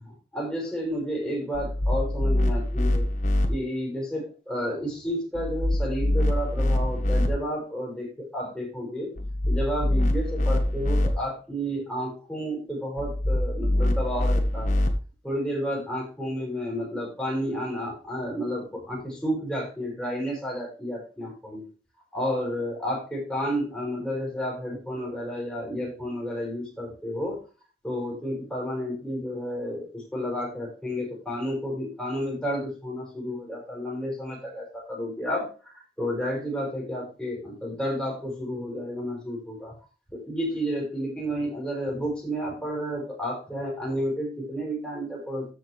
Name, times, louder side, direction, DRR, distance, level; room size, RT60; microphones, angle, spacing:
voice 1, 0.0-3.1 3.5-9.1 9.5-14.8 15.2-21.7 22.1-27.4 27.8-39.8 40.1-45.5, equal, 5° left, -4 dB, 5.3 m, -31 dB
sound 1, 1.5-3.5 5.3-7.3 9.2-11.1 13.0-14.9, left 1 dB, 45° left, 1.5 m, -24 dB
14.5 x 6.2 x 3.3 m, 0.33 s
head